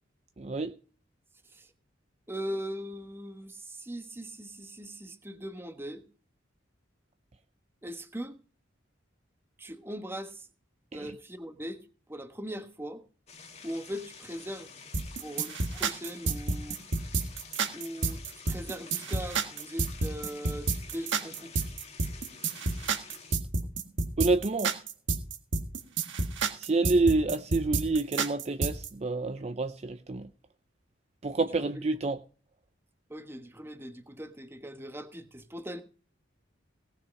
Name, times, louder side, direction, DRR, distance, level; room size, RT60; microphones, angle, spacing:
voice 1, 0.4-0.7 10.9-11.1 24.2-24.7 26.5-30.3 31.2-32.2, right 3 dB, 35° right, 0.5 m, -28 dB
voice 2, 2.3-6.1 7.8-8.4 9.6-10.5 10.9-13.0 13.6-14.7 15.2-16.9 17.7-21.6 33.1-35.8, equal, 10° right, 1.2 m, -40 dB
sound 1, 13.3-23.4, left 5 dB, 35° left, 1.7 m, -49 dB
sound 2, 14.9-28.9, right 4 dB, 65° right, 1.7 m, -30 dB
18.0 x 6.6 x 5.2 m
head